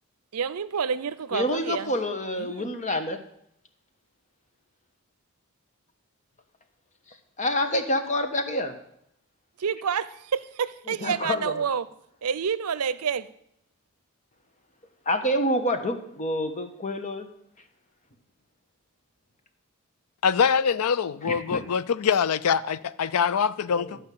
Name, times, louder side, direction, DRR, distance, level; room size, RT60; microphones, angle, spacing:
voice 1, 0.3-1.9 2.4-2.7 9.6-11.9 12.2-13.3, right 6 dB, 90° right, 0.6 m, -28 dB
voice 2, 1.3-3.2 7.4-8.7 10.9-11.5 15.0-17.3 21.2-21.6 23.7-24.0, left 1 dB, 35° left, 1.2 m, -27 dB
voice 3, 20.2-24.0, left 6 dB, 80° left, 0.4 m, -24 dB
11.5 x 5.3 x 8.4 m
head